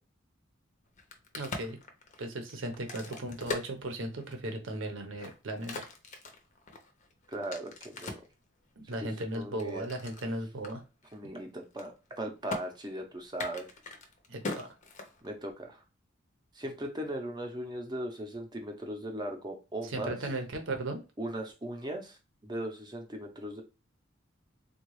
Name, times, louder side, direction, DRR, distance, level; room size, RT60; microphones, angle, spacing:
Crack, 0.9-4.5 5.0-8.3 8.9-10.3 10.6-10.7 11.0-11.4 11.6-12.2 12.5-12.6 13.3-15.5, left 2 dB, 35° left, 0.6 m, -41 dB
voice 1, 1.3-1.8 2.2-5.8 8.8-10.8 14.3-14.7 19.9-21.0, right 1 dB, 70° right, 4 dB, 0.7 m, -36 dB
voice 2, 7.3-8.2 9.0-9.1 9.3-9.9 11.1-13.7 15.2-15.8 16.5-20.2 21.2-23.6, right 1 dB, 20° right, 4 dB, 0.6 m, -38 dB
3.6 x 2.3 x 3.1 m, 0.29 s
head